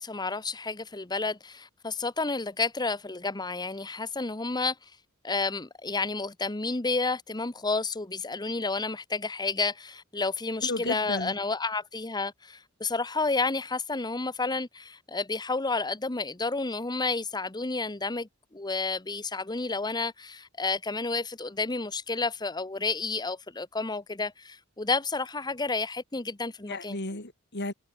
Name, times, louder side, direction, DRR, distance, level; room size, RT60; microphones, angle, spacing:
voice 1, 0.0-5.0 5.2-18.3 18.5-27.0, left 3 dB, 20° left, 1.1 m, -31 dB
voice 2, 10.6-11.4 26.7-27.7, left 2 dB, 55° left, 4.7 m, -33 dB
head